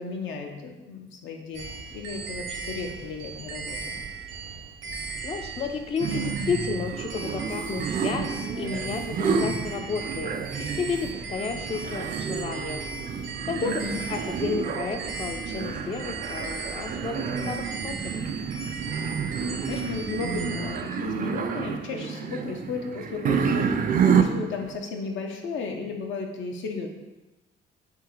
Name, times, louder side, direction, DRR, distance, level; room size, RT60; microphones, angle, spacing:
voice 1, 0.0-4.0 13.7-14.0 19.4-23.7 24.1-26.9, left 4 dB, 75° left, 3 dB, 0.7 m, -34 dB
sound 1, 1.5-20.8, right 4 dB, 75° right, 0.7 m, -37 dB
voice 2, 5.2-12.9 13.5-13.8 14.1-18.3, left 5 dB, 30° left, 5 dB, 0.3 m, -32 dB
sound 2, 6.0-24.8, right 6 dB, 45° right, 0.4 m, -29 dB
3.7 x 2.8 x 4.6 m, 1.1 s
cardioid pair, 90°, 20 cm